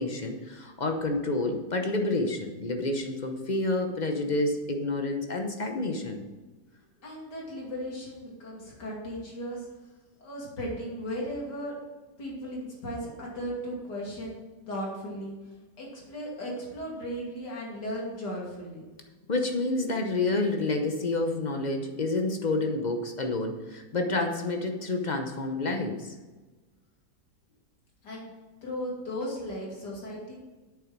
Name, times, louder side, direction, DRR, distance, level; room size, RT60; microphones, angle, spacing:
voice 1, 0.0-6.2 19.3-26.1, left 2 dB, 40° left, 4 dB, 0.6 m, -29 dB
voice 2, 7.0-9.7 10.2-11.7 12.2-14.4 14.7-15.3 15.8-18.8 28.0-28.3 28.6-30.3, equal, 70° left, -4 dB, 3.3 m, -36 dB
8.7 x 6.8 x 6.0 m, 1.3 s
omnidirectional pair, 1.9 m